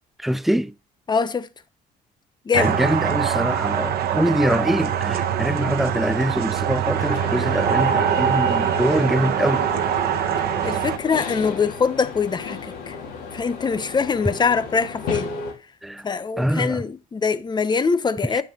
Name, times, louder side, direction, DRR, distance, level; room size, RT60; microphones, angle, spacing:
voice 1, 0.2-0.7 2.5-9.7 15.8-16.1 16.4-16.8 18.3-18.4, equal, ahead, 0.5 m, -23 dB
voice 2, 1.1-1.5 2.4-2.8 10.6-13.0 13.3-15.3 16.0-18.4, left 5 dB, 25° left, 1.0 m, -23 dB
sound 1, 2.5-11.0, right 9 dB, 65° right, 1.1 m, -23 dB
sound 2, 7.0-15.5, left 4 dB, 80° left, 3.6 m, -34 dB
9.7 x 5.9 x 4.3 m
cardioid pair, 110°, 17 cm